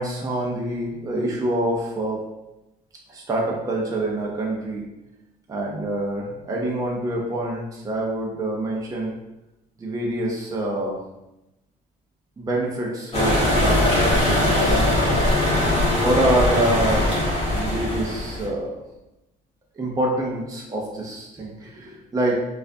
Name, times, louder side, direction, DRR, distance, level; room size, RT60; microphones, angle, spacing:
voice 1, 0.0-2.2 3.1-4.9 5.5-9.1 9.8-11.0 12.4-15.4 16.0-17.2 17.5-18.8 19.8-22.4, right 1 dB, 20° right, -2 dB, 0.6 m, -26 dB
sound 1, 13.1-18.5, left 1 dB, 35° left, 1.3 m, -21 dB
4.3 x 2.5 x 2.6 m, 0.95 s
cardioid pair, 110°, 17 cm